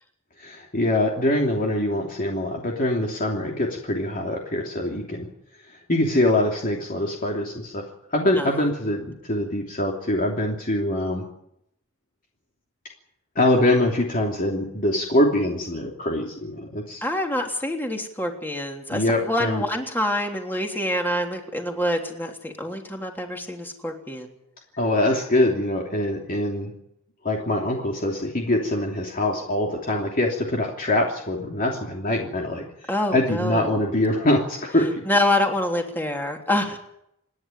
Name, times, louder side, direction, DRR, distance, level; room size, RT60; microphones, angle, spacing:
voice 1, 0.4-5.3 5.7-7.8 8.1-11.3 13.3-17.0 18.9-19.6 24.8-26.7 27.2-32.6 33.1-35.0, left 1 dB, 40° left, 0 dB, 3.0 m, -24 dB
voice 2, 17.0-24.3 32.9-33.8 35.0-36.8, left 1 dB, 10° left, 2 dB, 3.2 m, -26 dB
28.5 x 11.0 x 9.8 m, 0.76 s
head